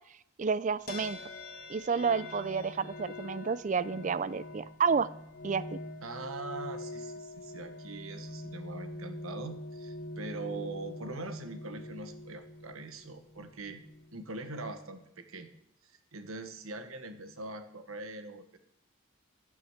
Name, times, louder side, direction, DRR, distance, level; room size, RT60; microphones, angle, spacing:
voice 1, 0.4-1.2 1.7-5.1 5.4-5.8, right 5 dB, 35° right, 18 dB, 0.4 m, -30 dB
sound 1, 0.9-14.4, left 2 dB, 45° left, 1.4 m, -44 dB
voice 2, 6.0-13.8 14.1-15.5 15.8-18.6, right 2 dB, 80° right, 8 dB, 1.3 m, -42 dB
14.5 x 6.3 x 7.3 m, 0.76 s
head